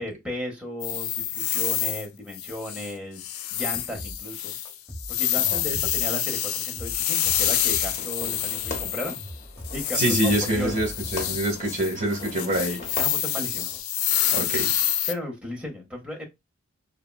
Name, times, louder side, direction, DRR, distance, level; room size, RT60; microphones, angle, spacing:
voice 1, 0.0-3.2 3.5-4.6 5.1-9.1 9.7-10.8 13.0-13.7 15.1-16.2, left 1 dB, 5° right, 0.7 m, -35 dB
sound 1, 0.8-2.1 2.3-2.9 3.2-9.3 9.6-15.1, left 11 dB, 85° left, 0.3 m, -27 dB
sound 2, 3.9-4.3 4.6-6.2 6.5-8.1 8.4-11.5, equal, 10° left, 1.0 m, -40 dB
Fireworks, 7.8-13.8, left 1 dB, 35° left, 0.7 m, -40 dB
voice 2, 9.9-13.0 14.3-14.7, right 1 dB, 35° right, 1.0 m, -26 dB
3.4 x 2.1 x 2.2 m
head